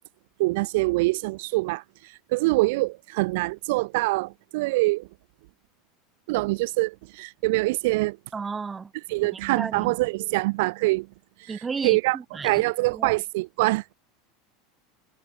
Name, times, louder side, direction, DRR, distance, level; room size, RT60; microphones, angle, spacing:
voice 1, 0.4-5.1 6.3-8.2 9.1-11.1 11.4-12.2 12.4-13.8, right 23 dB, 65° right, 1.0 m, -24 dB
voice 2, 8.3-8.9 9.3-9.9 11.5-12.6 12.9-13.1, right 5 dB, 20° right, 3.1 m, -34 dB
hypercardioid pair, 85°, 0 cm